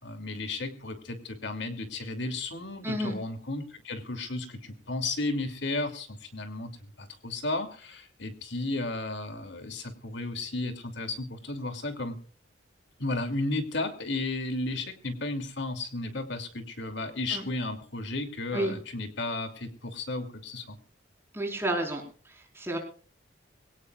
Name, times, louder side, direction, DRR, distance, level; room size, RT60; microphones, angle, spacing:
voice 1, 0.0-12.2 13.0-20.8, left 2 dB, 70° left, 6 dB, 2.7 m, -34 dB
voice 2, 2.8-3.1 17.3-17.4 18.5-18.7 21.3-22.8, right 1 dB, 10° right, 1 dB, 4.5 m, -31 dB
24.5 x 17.5 x 2.4 m, 0.40 s
head